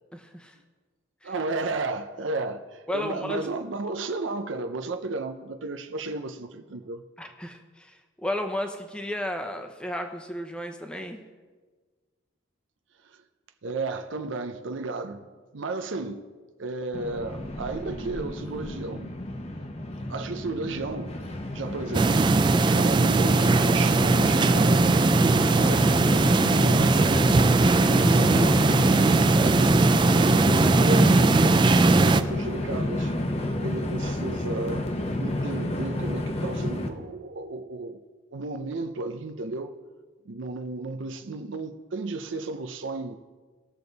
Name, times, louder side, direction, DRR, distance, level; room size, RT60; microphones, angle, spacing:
voice 1, 0.1-0.5 1.2-1.3 2.9-3.4 7.2-11.2, left 1 dB, 5° left, 0.8 m, -33 dB
voice 2, 1.2-7.0 13.0-13.2 13.6-16.3 16.6-19.2 20.1-21.2 21.5-22.3 22.6-26.0 26.5-27.2 28.0-29.9 30.6-33.2 33.6-34.9 35.2-38.0 38.3-39.8 40.3-43.2, right 3 dB, 80° right, 0.6 m, -34 dB
Train, 16.9-36.9, left 1 dB, 30° left, 0.8 m, -30 dB
sound 1, 21.9-32.2, right 3 dB, 25° right, 0.3 m, -20 dB
19.0 x 6.8 x 4.0 m
head